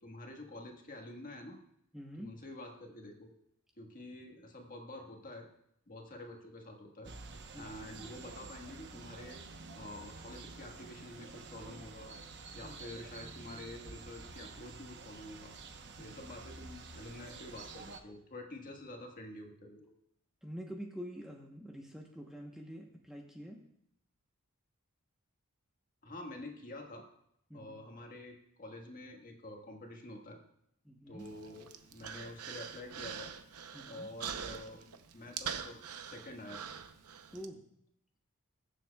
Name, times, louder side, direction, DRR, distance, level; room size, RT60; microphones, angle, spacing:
voice 1, 0.0-1.6 2.2-3.3 3.8-5.5 5.9-7.1 7.6-9.4 9.7-12.2 12.5-15.5 16.0-19.9 26.0-27.1 27.5-30.4 31.1-33.3 33.9-34.9 35.1-36.6, left 1 dB, 40° left, 2 dB, 1.5 m, -48 dB
voice 2, 1.9-2.4 7.5-7.8 12.6-12.8 16.0-16.2 20.4-23.6 27.5-27.8 30.8-31.3 33.7-34.1 37.3-37.6, equal, ahead, 0 dB, 0.9 m, -46 dB
sound 1, 7.0-18.0, right 3 dB, 55° right, 1.0 m, -49 dB
Human voice, 31.2-37.5, right 7 dB, 85° right, 0.7 m, -44 dB
21.5 x 7.4 x 2.3 m, 0.74 s
head